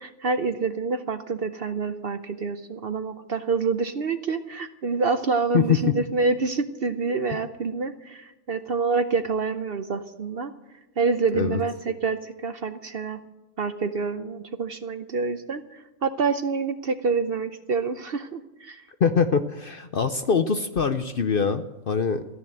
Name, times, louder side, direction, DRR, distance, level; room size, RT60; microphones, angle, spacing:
voice 1, 0.0-10.5 11.0-13.2 13.6-18.8, right 4 dB, 50° right, 10 dB, 0.8 m, -27 dB
voice 2, 19.0-22.2, left 5 dB, 50° left, 9 dB, 0.7 m, -23 dB
14.5 x 10.5 x 7.8 m, 1.0 s
omnidirectional pair, 1.5 m